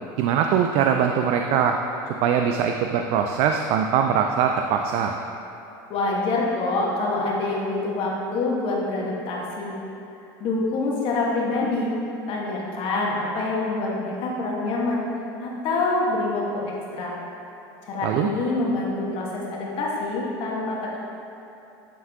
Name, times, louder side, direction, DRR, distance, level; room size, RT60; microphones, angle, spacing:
voice 1, 0.2-1.8 2.1-5.2 18.0-18.3, right 8 dB, 60° right, 4 dB, 0.4 m, -22 dB
voice 2, 5.9-9.7 10.4-11.9 12.3-15.0 15.4-17.2 17.9-21.0, left 2 dB, 50° left, -3 dB, 1.4 m, -26 dB
9.2 x 3.5 x 3.5 m, 2.9 s
supercardioid pair, 100°, 12 cm